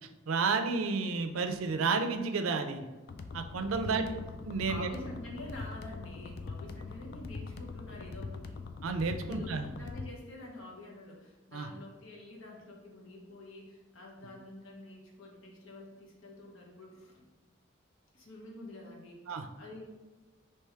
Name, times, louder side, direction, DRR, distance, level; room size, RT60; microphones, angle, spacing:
voice 1, 0.0-2.8 3.3-4.9 8.8-9.7 11.5-11.7 19.3-19.5, right 4 dB, 90° right, 7 dB, 0.5 m, -31 dB
sound 1, 3.1-10.1, left 4 dB, 50° left, 0.3 m, -42 dB
voice 2, 3.8-4.3 4.7-8.6 9.2-17.3 18.1-19.2 19.6-19.9, left 1 dB, 80° left, -2 dB, 0.9 m, -47 dB
3.4 x 3.0 x 4.4 m, 1.2 s
head